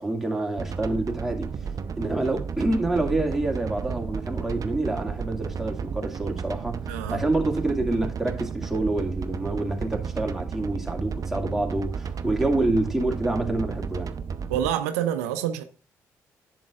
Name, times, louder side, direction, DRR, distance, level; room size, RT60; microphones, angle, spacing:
voice 1, 0.0-1.5 2.0-14.1, right 2 dB, 5° right, 2.2 m, -27 dB
sound 1, 0.6-14.7, right 6 dB, 45° right, 0.7 m, -33 dB
voice 2, 6.9-7.2 14.5-15.6, right 10 dB, 80° right, 0.5 m, -27 dB
10.5 x 7.6 x 2.5 m
hypercardioid pair, 45°, 8 cm